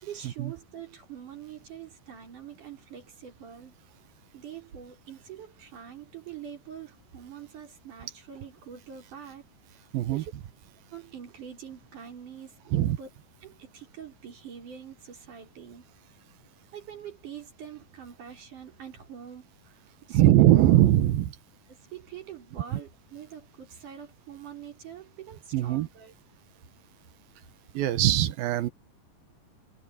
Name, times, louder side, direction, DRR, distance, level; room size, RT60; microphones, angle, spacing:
voice 1, 0.0-3.7 4.3-9.4 9.7-10.3 10.9-13.1 13.4-15.9 16.7-20.6 21.9-26.1, right 8 dB, 60° right, 5.9 m, -45 dB
voice 2, 9.9-10.2 12.7-13.0 20.1-21.4 22.7-22.8 25.5-25.9 27.7-28.7, right 14 dB, 85° right, 3.0 m, -21 dB
omnidirectional pair, 4.1 m